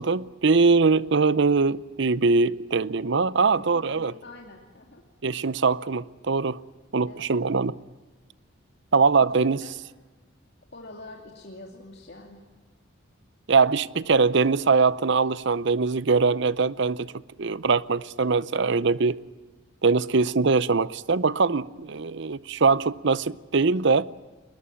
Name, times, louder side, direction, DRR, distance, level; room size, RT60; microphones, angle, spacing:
voice 1, 0.0-4.1 5.2-6.6 6.9-7.7 8.9-9.6 13.5-17.1 17.4-19.2 19.8-24.1, right 4 dB, 60° right, 0.6 m, -22 dB
voice 2, 3.4-5.0 7.1-7.4 9.2-9.7 10.7-12.4, left 2 dB, 50° left, 2.5 m, -45 dB
21.5 x 21.0 x 9.0 m
head